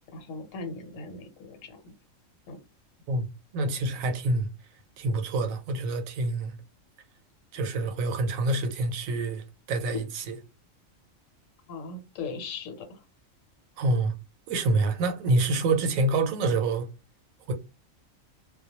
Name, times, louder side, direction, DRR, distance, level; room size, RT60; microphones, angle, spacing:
voice 1, 0.1-1.9 2.5-2.6 11.7-13.0, left 4 dB, 75° left, 1.1 m, -39 dB
voice 2, 3.5-4.5 5.0-6.5 7.5-10.4 13.8-14.1 14.5-16.9 17.5-17.6, right 2 dB, 85° right, 1.0 m, -27 dB
2.2 x 2.1 x 2.8 m
omnidirectional pair, 1.4 m